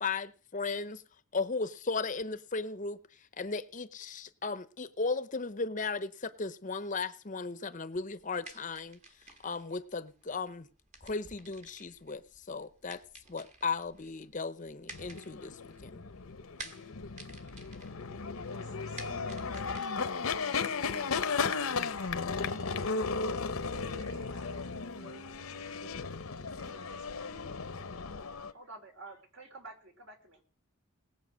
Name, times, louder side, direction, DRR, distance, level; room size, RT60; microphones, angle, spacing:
voice 1, 0.0-1.0 1.3-9.0 9.2-10.7 11.0-13.0 13.3-16.0, left 4 dB, 35° left, 0.7 m, -36 dB
sound 1, 8.1-22.2, right 3 dB, 35° right, 1.8 m, -53 dB
sound 2, 14.9-28.5, left 5 dB, 85° left, 0.9 m, -35 dB
voice 2, 18.4-20.7 21.8-27.4, right 1 dB, 85° right, 4.1 m, -53 dB
voice 3, 28.5-30.4, right 3 dB, 60° right, 3.4 m, -49 dB
19.0 x 8.7 x 6.3 m
head